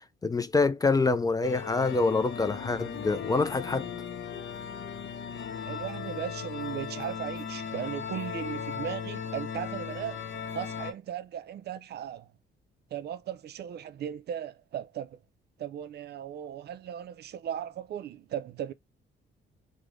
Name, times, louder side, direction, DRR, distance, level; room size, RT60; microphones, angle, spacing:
voice 1, 0.2-3.9, left 3 dB, 20° left, 0.3 m, -26 dB
sound 1, 1.4-10.9, left 7 dB, 65° left, 0.7 m, -37 dB
voice 2, 5.7-10.2 10.5-12.3 12.9-15.2 15.6-18.7, right 10 dB, 55° right, 0.4 m, -37 dB
3.2 x 2.1 x 3.6 m
cardioid pair, 90°, 20 cm